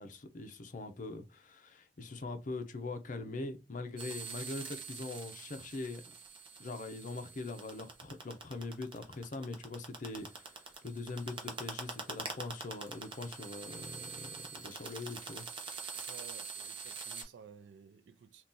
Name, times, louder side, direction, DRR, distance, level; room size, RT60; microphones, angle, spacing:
voice 1, 0.0-6.0 6.6-14.3 14.6-15.4, left 3 dB, 45° left, 0.6 m, -42 dB
sound 1, 4.0-17.2, right 4 dB, 30° right, 0.7 m, -45 dB
voice 2, 16.1-18.5, right 6 dB, 90° right, 0.4 m, -54 dB
2.7 x 2.3 x 3.7 m
head